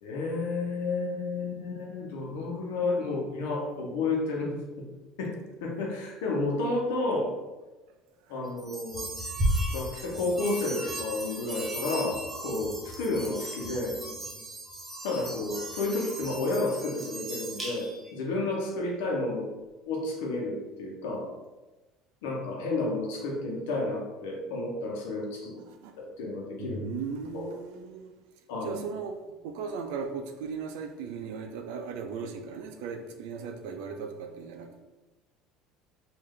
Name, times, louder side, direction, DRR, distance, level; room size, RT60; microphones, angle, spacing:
voice 1, 0.0-4.8 5.2-5.3 5.6-7.3 8.3-9.1 9.7-13.9 15.0-19.5 19.9-21.3 22.2-25.5 26.0-26.8 27.3-27.5 28.5-28.8, left 2 dB, 85° left, 0 dB, 0.9 m, -31 dB
sound 1, 8.6-18.1, right 1 dB, 15° right, 1.0 m, -35 dB
voice 2, 26.6-28.1 28.6-29.2 29.4-34.8, right 5 dB, 80° right, 5 dB, 0.4 m, -37 dB
3.2 x 2.6 x 3.7 m, 1.1 s
supercardioid pair, 100°, 0 cm